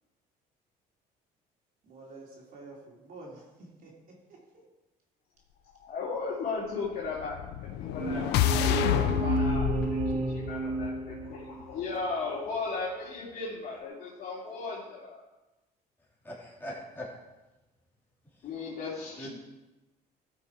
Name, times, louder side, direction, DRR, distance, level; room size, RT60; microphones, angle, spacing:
voice 1, 1.8-4.4, right 2 dB, 60° right, -3 dB, 3.1 m, -49 dB
voice 2, 5.6-7.4 7.8-10.0 10.3-15.2 18.4-19.3, left 4 dB, 60° left, -7 dB, 2.9 m, -36 dB
sound 1, 7.2-11.4, left 11 dB, 90° left, 0.6 m, -29 dB
sound 2, 8.0-11.7, right 3 dB, 40° right, 1.1 m, -32 dB
voice 3, 16.2-17.1 19.2-19.3, left 1 dB, 10° left, -5 dB, 3.0 m, -40 dB
13.5 x 6.0 x 4.6 m, 1.1 s
cardioid pair, 110°, 17 cm